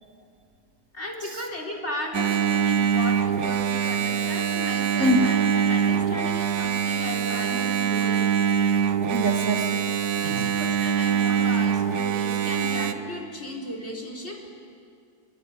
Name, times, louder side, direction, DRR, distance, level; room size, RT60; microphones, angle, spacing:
voice 1, 0.9-8.7 10.2-14.5, left 1 dB, 45° left, 1 dB, 4.4 m, -35 dB
Engine, 2.1-12.9, right 8 dB, 80° right, 1.6 m, -24 dB
voice 2, 9.1-9.7 10.2-10.6, equal, 55° right, 3 dB, 2.3 m, -25 dB
26.0 x 22.5 x 9.9 m, 2.4 s
omnidirectional pair, 1.6 m